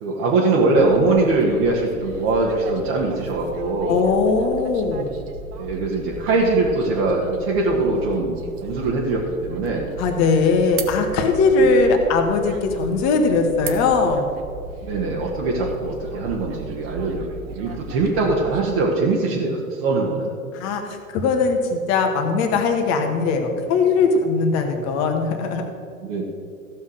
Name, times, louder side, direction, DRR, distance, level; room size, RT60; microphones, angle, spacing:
voice 1, 0.0-4.0 5.6-8.3 8.6-9.9 11.6-11.7 14.8-20.3 26.0-26.2, right 3 dB, 45° right, -3 dB, 1.9 m, -22 dB
sound 1, 0.7-18.7, right 3 dB, 30° right, 1.0 m, -37 dB
voice 2, 3.9-5.1 10.0-14.3 20.5-25.6, left 4 dB, 40° left, 4 dB, 1.7 m, -20 dB
15.0 x 5.6 x 6.5 m, 2.3 s
figure-of-eight pair, 100°, 42 cm